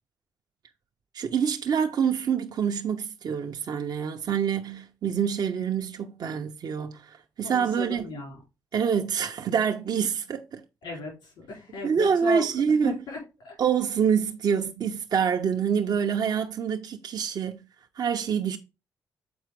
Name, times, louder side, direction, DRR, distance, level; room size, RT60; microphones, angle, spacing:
voice 1, 1.1-8.1 8.7-10.6 11.8-13.0 13.6-17.6 18.0-18.6, right 7 dB, 65° right, 0.8 m, -26 dB
voice 2, 7.4-8.4 10.8-12.4 12.8-13.2 13.4-13.6, left 2 dB, 90° left, 5.1 m, -34 dB
7.1 x 4.6 x 5.1 m
cardioid pair, 70°, 7 cm